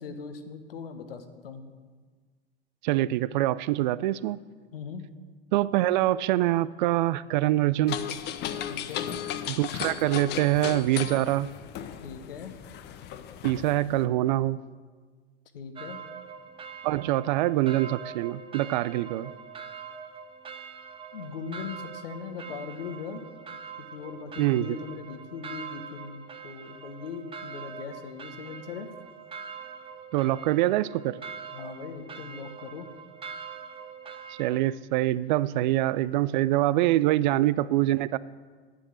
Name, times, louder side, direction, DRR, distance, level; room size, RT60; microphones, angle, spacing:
voice 1, 0.0-1.6 4.7-5.0 8.7-9.1 12.0-12.5 15.5-16.0 21.1-23.3 23.8-28.9 31.5-32.9, left 6 dB, 70° left, 8 dB, 1.2 m, -39 dB
voice 2, 2.8-4.4 5.5-8.0 9.5-11.5 13.4-14.6 16.8-19.3 24.4-24.8 30.1-31.2 34.4-38.2, right 15 dB, 50° right, 18 dB, 0.4 m, -25 dB
sound 1, 7.9-14.0, left 10 dB, 35° left, 0.7 m, -35 dB
sound 2, 15.8-34.5, right 6 dB, 20° right, 0.9 m, -43 dB
10.5 x 9.3 x 6.2 m, 1.5 s
figure-of-eight pair, 90°, 30 cm